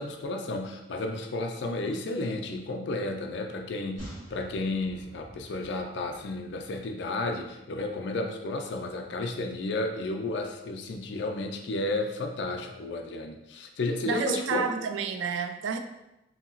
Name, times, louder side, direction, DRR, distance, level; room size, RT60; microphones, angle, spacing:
voice 1, 0.0-14.7, left 2 dB, 65° left, 3 dB, 0.4 m, -32 dB
sound 1, 4.0-7.4 7.7-7.8, right 1 dB, 40° right, 1.1 m, -48 dB
voice 2, 14.0-15.8, right 6 dB, 80° right, 7 dB, 0.3 m, -30 dB
2.8 x 2.7 x 2.7 m, 0.93 s
head